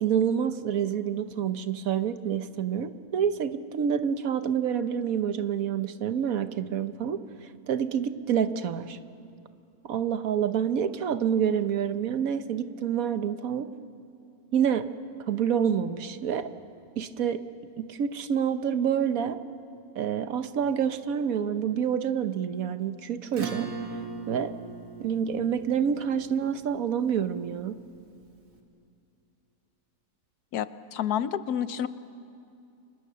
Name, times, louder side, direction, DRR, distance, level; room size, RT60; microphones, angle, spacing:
voice 1, 0.0-9.0 9.8-13.7 14.5-14.9 15.3-16.5 17.0-17.4 17.8-19.4 19.9-24.5 25.0-27.8, right 8 dB, 65° right, 11 dB, 1.3 m, -28 dB
Acoustic guitar / Strum, 23.3-28.2, right 5 dB, 90° right, 2.6 m, -39 dB
voice 2, 30.5-31.9, left 9 dB, 80° left, 13 dB, 1.3 m, -29 dB
30.0 x 23.5 x 6.8 m, 2.6 s
omnidirectional pair, 1.6 m